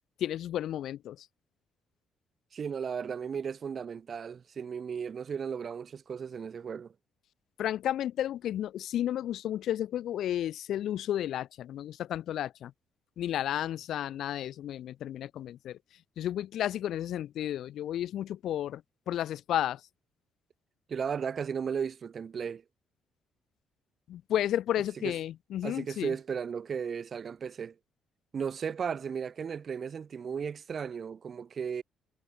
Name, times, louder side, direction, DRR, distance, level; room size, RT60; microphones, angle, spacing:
voice 1, 0.2-1.3 7.6-12.7 13.2-15.8 16.2-18.8 19.1-19.8 24.1-26.1, left 11 dB, 70° left, 0.4 m, -32 dB
voice 2, 2.5-6.9 20.9-22.6 25.0-25.1 25.6-27.7 28.3-31.8, right 6 dB, 45° right, 0.4 m, -35 dB
cardioid pair, 90°, 0 cm